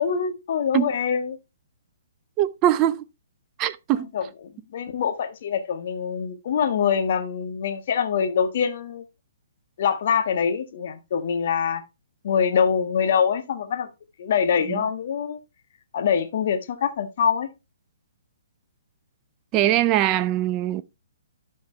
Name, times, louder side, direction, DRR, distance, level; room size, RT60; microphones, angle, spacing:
voice 1, 0.0-1.4 4.1-4.2 4.7-9.0 9.8-11.8 12.2-13.9 14.2-15.4 15.9-17.5, left 7 dB, 45° left, 1.4 m, -24 dB
voice 2, 2.4-3.0 3.6-4.1 14.7-14.8 19.5-20.8, right 12 dB, 25° right, 0.5 m, -22 dB
12.5 x 5.1 x 3.3 m
figure-of-eight pair, 125°, 0 cm